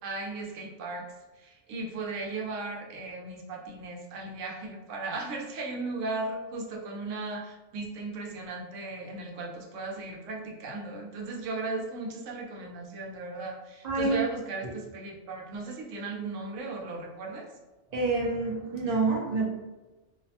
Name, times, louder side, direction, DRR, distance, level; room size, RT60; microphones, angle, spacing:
voice 1, 0.0-1.1 1.4-17.5, right 3 dB, 85° right, 0 dB, 1.0 m, -36 dB
voice 2, 13.8-14.2 14.6-14.7 17.9-19.5, right 3 dB, 50° right, -2 dB, 0.5 m, -27 dB
2.6 x 2.1 x 2.7 m, 1.2 s
omnidirectional pair, 1.3 m